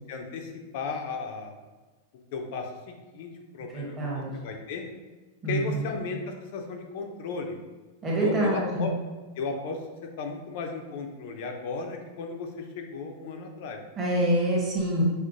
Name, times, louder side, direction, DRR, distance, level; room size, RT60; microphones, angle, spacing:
voice 1, 0.1-1.5 2.3-4.9 5.5-6.2 6.5-7.6 8.2-8.9 9.4-9.8 10.2-12.5 12.8-13.8, left 4 dB, 45° left, 4 dB, 0.5 m, -35 dB
voice 2, 3.7-4.3 5.4-5.9 8.0-8.9 13.9-15.0, right 1 dB, 15° right, -5 dB, 0.9 m, -26 dB
6.1 x 2.1 x 2.6 m, 1.3 s
supercardioid pair, 175°, 0 cm